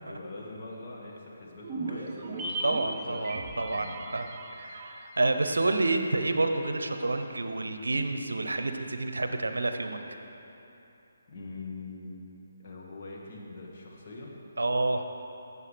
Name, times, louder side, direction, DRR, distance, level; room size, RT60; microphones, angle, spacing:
voice 1, 0.0-4.1 11.3-14.3, left 3 dB, 40° left, -3 dB, 1.7 m, -44 dB
sound 1, 1.6-6.1 6.4-6.5, right 2 dB, 25° right, 0.8 m, -38 dB
voice 2, 2.6-4.3 4.6-10.0 14.6-15.0, right 2 dB, 75° right, 7 dB, 0.7 m, -29 dB
14.5 x 7.1 x 3.3 m, 3.0 s
figure-of-eight pair, 145°, 0 cm